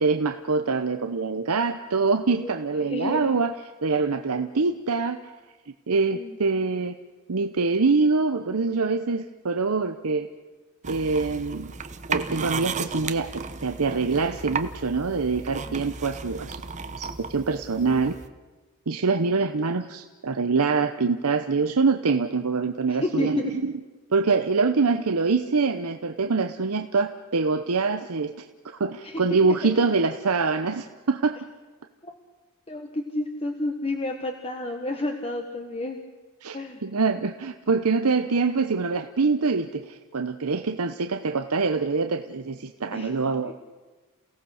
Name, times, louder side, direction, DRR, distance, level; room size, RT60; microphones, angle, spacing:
voice 1, 0.0-3.6 3.8-5.2 5.9-7.0 7.3-10.3 10.8-11.7 12.1-13.3 13.6-16.6 17.0-18.1 18.9-23.7 24.1-28.3 28.8-31.4 36.4-43.5, right 4 dB, 80° right, 7 dB, 0.8 m, -24 dB
voice 2, 2.9-3.4 3.9-4.0 6.1-6.4 15.5-15.8 22.9-23.5 29.0-29.2 29.6-29.7 32.0-32.1 32.7-36.0 36.5-36.8 42.9-43.5, left 2 dB, 25° left, 3 dB, 1.4 m, -31 dB
sound 1, 10.8-18.3, right 5 dB, 30° right, 0.9 m, -34 dB
28.5 x 17.0 x 6.5 m, 1.2 s
head